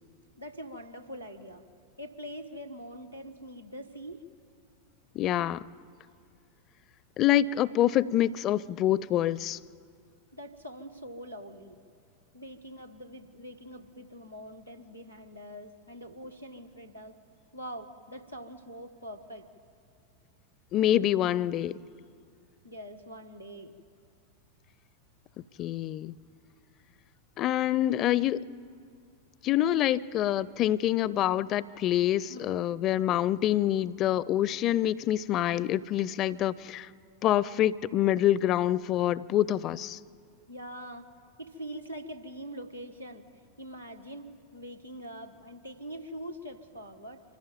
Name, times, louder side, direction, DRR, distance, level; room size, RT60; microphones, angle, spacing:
voice 1, 0.4-1.6 2.0-4.2 10.3-11.8 12.3-17.2 17.5-19.5 22.6-23.8 32.3-32.4 40.5-41.1 41.4-43.2 43.6-47.2, equal, 90° right, 1.6 m, -43 dB
voice 2, 5.1-5.7 7.2-9.6 20.7-21.8 25.6-26.1 27.4-28.4 29.4-36.9 37.2-40.0, left 12 dB, 35° left, 0.5 m, -26 dB
25.5 x 16.0 x 9.0 m
figure-of-eight pair, 90°, 0 cm